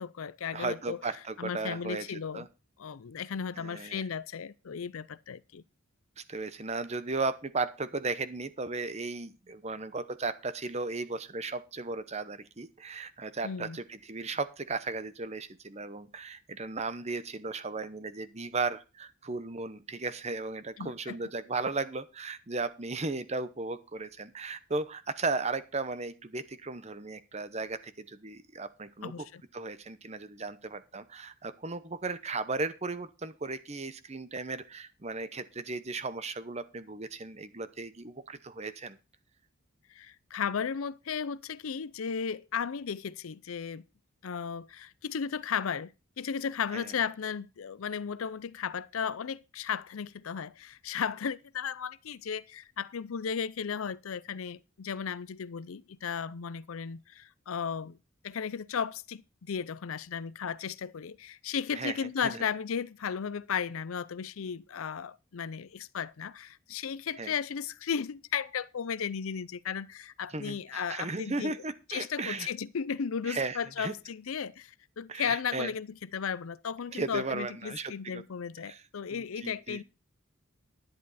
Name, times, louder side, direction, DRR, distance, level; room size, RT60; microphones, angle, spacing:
voice 1, 0.0-1.0 1.4-2.5 2.8-5.6 13.4-13.8 20.8-21.2 29.0-29.4 39.9-43.9 44.2-58.0 58.2-71.6 71.9-79.8, left 7 dB, 80° left, 0.5 m, -35 dB
voice 2, 0.5-2.5 3.6-4.0 6.2-29.3 29.5-39.0 46.7-46.9 61.7-62.4 67.2-67.3 70.3-72.5 73.3-73.9 75.1-75.7 76.9-78.2 78.7-78.8 79.1-79.8, right 3 dB, 30° right, 0.9 m, -36 dB
11.0 x 10.5 x 4.1 m
head